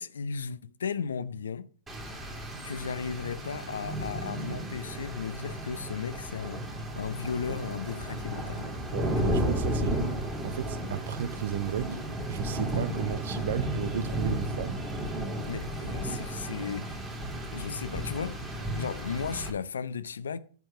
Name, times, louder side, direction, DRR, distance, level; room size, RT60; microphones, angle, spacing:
voice 1, 0.0-1.7 2.6-8.7 9.2-9.4 9.8-9.9 15.5-17.1 17.5-20.4, left 6 dB, 80° left, 0.6 m, -35 dB
Rain, 1.9-19.5, right 1 dB, 15° right, 2.5 m, -33 dB
voice 2, 8.9-10.0 10.4-12.0 12.3-14.8, right 9 dB, 65° right, 0.7 m, -34 dB
8.0 x 4.6 x 6.8 m
hypercardioid pair, 110°, 0 cm